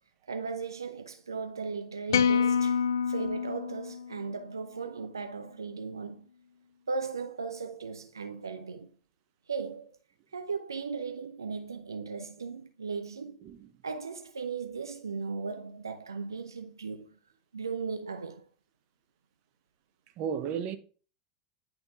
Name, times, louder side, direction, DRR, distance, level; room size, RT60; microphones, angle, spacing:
voice 1, 0.3-2.8 3.1-6.3 6.9-8.9 9.5-9.9 10.3-13.4 13.8-17.2 17.5-18.5, right 5 dB, 85° right, 0.4 m, -37 dB
sound 1, 2.1-4.5, left 7 dB, 70° left, 0.4 m, -27 dB
voice 2, 13.4-13.8 20.2-20.8, right 7 dB, 50° right, 0.9 m, -34 dB
10.5 x 3.5 x 3.5 m
figure-of-eight pair, 85°, 2 cm